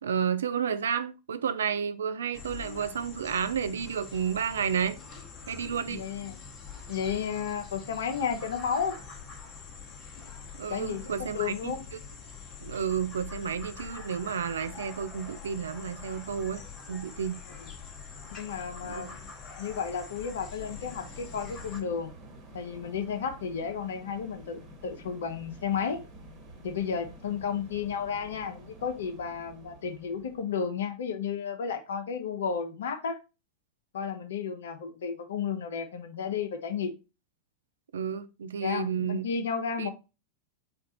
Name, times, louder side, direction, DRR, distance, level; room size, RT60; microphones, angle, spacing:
voice 1, 0.0-5.0 5.5-6.0 10.6-12.0 12.6-16.6 16.9-17.3 18.8-19.1 37.9-39.2 39.8-39.9, right 7 dB, 65° right, 0.3 m, -31 dB
sound 1, 2.3-21.8, left 5 dB, 30° left, 0.9 m, -45 dB
voice 2, 5.9-6.4 6.9-9.0 10.7-11.8 17.6-17.7 18.3-19.3 19.6-22.1 22.5-26.0 26.6-33.2 33.9-36.9 38.6-39.9, left 6 dB, 60° left, 0.7 m, -33 dB
sound 2, 20.6-30.8, right 1 dB, 30° right, 1.2 m, -49 dB
4.4 x 2.4 x 4.1 m
figure-of-eight pair, 90°, 0 cm